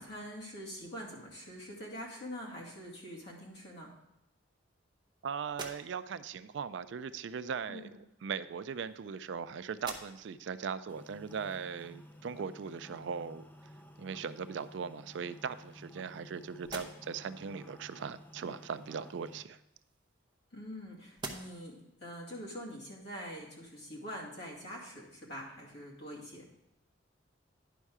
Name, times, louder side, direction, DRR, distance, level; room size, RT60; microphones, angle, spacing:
voice 1, 0.0-3.9 7.7-7.9 20.5-26.5, equal, 60° left, -3 dB, 2.3 m, -44 dB
voice 2, 5.2-13.4 14.0-19.6, right 6 dB, 60° right, 14 dB, 0.4 m, -39 dB
sound 1, 5.4-6.3 7.4-7.6 8.5-9.4 9.7-10.5 11.0-11.1 13.7-13.8 14.3-14.9 15.5-16.3 16.6-17.3 19.3-20.8 21.1-21.8, right 3 dB, 25° right, 0.8 m, -48 dB
sound 2, 10.9-19.4, equal, 10° left, 0.5 m, -53 dB
10.0 x 5.5 x 4.8 m, 0.89 s
head